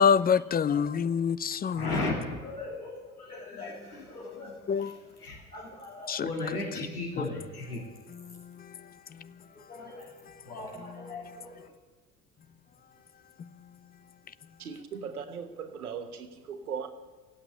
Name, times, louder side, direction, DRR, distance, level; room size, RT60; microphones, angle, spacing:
voice 1, 0.0-2.0 4.7-4.9 6.1-6.3 8.1-8.6, left 7 dB, 20° left, 0.6 m, -26 dB
voice 2, 1.7-7.8 9.5-10.1 10.4-11.7, left 2 dB, 85° left, 2.2 m, -37 dB
voice 3, 14.6-16.9, right 6 dB, 80° right, 1.3 m, -38 dB
16.0 x 8.6 x 9.6 m
figure-of-eight pair, 65°, 44 cm